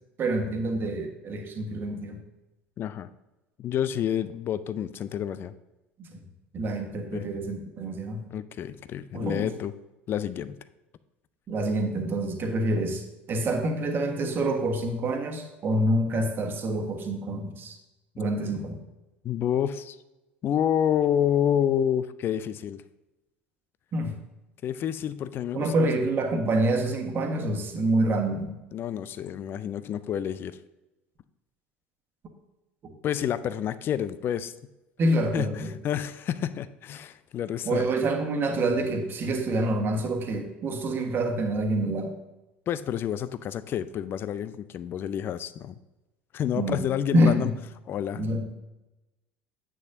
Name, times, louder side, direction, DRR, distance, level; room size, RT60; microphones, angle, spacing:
voice 1, 0.2-2.2 6.0-6.2 6.5-8.2 9.1-9.5 11.5-13.0 13.3-17.8 18.2-18.8 23.9-24.2 25.5-28.5 32.8-32.9 35.0-35.7 37.6-42.1 46.5-46.8 47.1-47.5 48.2-48.4, right 1 dB, 35° right, 4 dB, 1.4 m, -27 dB
voice 2, 2.8-3.1 3.6-5.5 7.1-7.3 8.3-9.7 10.1-10.6 19.2-20.0 20.4-22.8 24.6-25.9 28.7-30.6 33.0-34.5 35.3-37.9 42.7-45.8 46.3-47.5 47.9-48.2, left 9 dB, 35° left, 14 dB, 0.4 m, -29 dB
9.7 x 8.6 x 2.7 m, 1.0 s
figure-of-eight pair, 65°, 6 cm